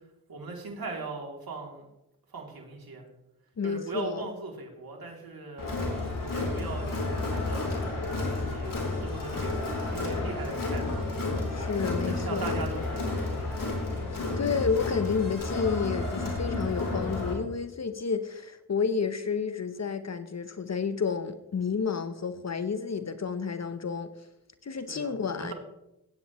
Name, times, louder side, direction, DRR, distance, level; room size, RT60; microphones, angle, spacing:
voice 1, 0.3-1.9 2.3-3.0 3.6-5.8 6.3-7.7 8.3-8.7 9.0-11.3 12.0-13.7 24.9-25.5, right 3 dB, 80° right, 0 dB, 2.9 m, -39 dB
voice 2, 3.6-4.2 11.5-12.5 14.4-24.1 24.6-25.5, left 5 dB, 45° left, 11 dB, 0.8 m, -30 dB
Crowd, 5.6-17.3, left 2 dB, 65° left, 3.5 m, -31 dB
17.0 x 8.8 x 3.1 m, 0.91 s
cardioid pair, 45°, 36 cm